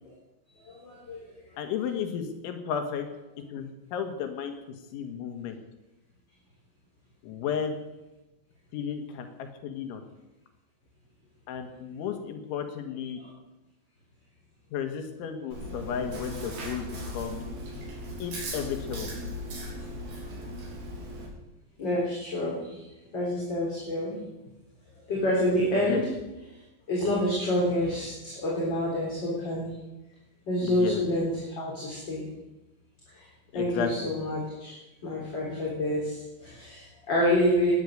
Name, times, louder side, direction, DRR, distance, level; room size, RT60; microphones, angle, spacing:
voice 1, 0.7-1.3 13.2-13.3 21.8-22.8 23.1-24.2 25.1-26.0 26.5-26.6 26.9-29.7 30.5-32.2 33.1-33.3 33.5-34.7 35.0-37.7, left 1 dB, 25° left, -5 dB, 3.9 m, -28 dB
voice 2, 1.6-3.1 3.5-4.6 4.9-5.6 7.2-7.7 8.7-10.0 11.5-13.2 14.7-17.5 18.2-19.1 25.9-26.0 30.6-31.0 33.5-34.1, left 7 dB, 90° left, 5 dB, 4.0 m, -33 dB
Chewing mastication, 15.5-21.3, equal, 55° right, 5.1 m, -38 dB
20.5 x 9.7 x 6.6 m, 1.0 s
omnidirectional pair, 5.3 m